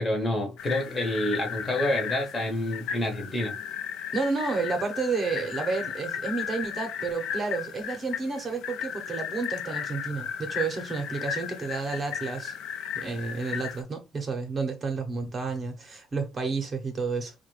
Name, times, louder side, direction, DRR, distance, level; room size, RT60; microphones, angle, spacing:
voice 1, 0.0-3.6, left 1 dB, 20° left, 0.7 m, -28 dB
sound 1, 0.6-13.8, left 8 dB, 90° left, 0.5 m, -35 dB
voice 2, 4.1-12.5 12.9-17.3, right 4 dB, 25° right, 0.7 m, -31 dB
4.7 x 2.2 x 3.1 m
cardioid pair, 170°, 0 cm